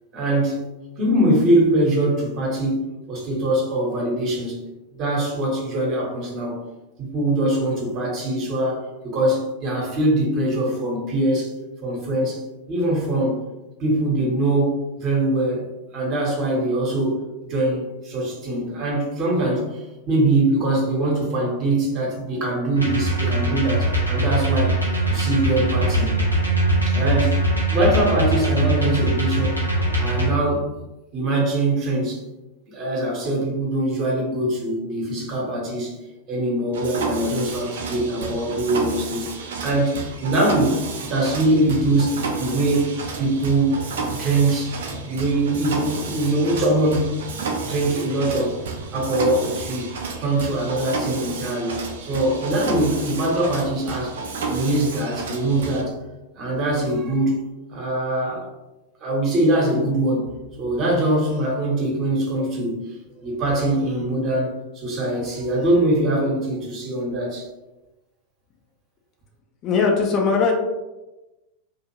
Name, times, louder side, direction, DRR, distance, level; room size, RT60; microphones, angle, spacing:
voice 1, 0.1-0.6 1.0-4.6 5.0-6.6 7.0-11.5 11.8-13.4 13.8-15.6 15.9-24.8 25.1-26.2 26.9-27.4 27.7-29.6 30.0-30.7 31.1-32.2 32.7-35.9 36.3-39.3 39.6-43.7 44.1-47.1 47.6-48.6 48.9-49.9 50.2-54.1 54.5-55.9 56.4-57.3 57.7-58.4 59.0-60.3 60.6-67.5, right 1 dB, 35° right, -3 dB, 1.0 m, -22 dB
sound 1, 22.8-30.3, right 1 dB, 90° left, 0.6 m, -21 dB
Mechanisms, 36.7-55.8, right 4 dB, 60° right, 0.5 m, -31 dB
voice 2, 69.6-70.5, left 5 dB, 35° left, 0 dB, 0.5 m, -19 dB
2.5 x 2.4 x 2.9 m, 1.1 s
figure-of-eight pair, 90°, 0 cm